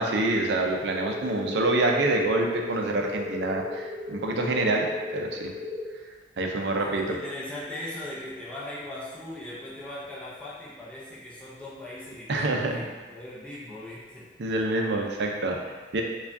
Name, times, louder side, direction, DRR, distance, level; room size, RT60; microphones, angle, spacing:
voice 1, 0.0-4.9 5.1-5.5 6.4-7.2 12.3-12.9 14.4-16.0, right 2 dB, 60° right, 1 dB, 0.5 m, -26 dB
sound 1, 0.8-5.8, left 3 dB, 30° right, 1.3 m, -36 dB
voice 2, 6.8-14.3, left 1 dB, 5° left, -8 dB, 0.5 m, -39 dB
4.6 x 2.3 x 2.6 m, 1.3 s
head